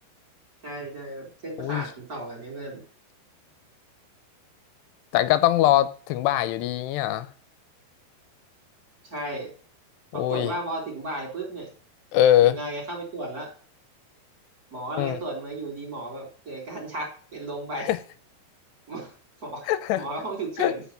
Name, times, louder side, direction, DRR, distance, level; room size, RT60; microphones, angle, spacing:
voice 1, 0.6-2.8 9.0-9.5 10.1-11.7 12.4-13.5 14.7-17.9 18.9-19.1 19.4-19.7 20.0-20.8, right 2 dB, 20° right, 3.6 m, -34 dB
voice 2, 5.1-7.3 10.2-10.5 12.1-12.6 15.0-15.2 17.9-18.0 19.7-20.0 20.6-20.7, left 13 dB, 90° left, 2.8 m, -22 dB
8.3 x 6.0 x 5.7 m
omnidirectional pair, 4.9 m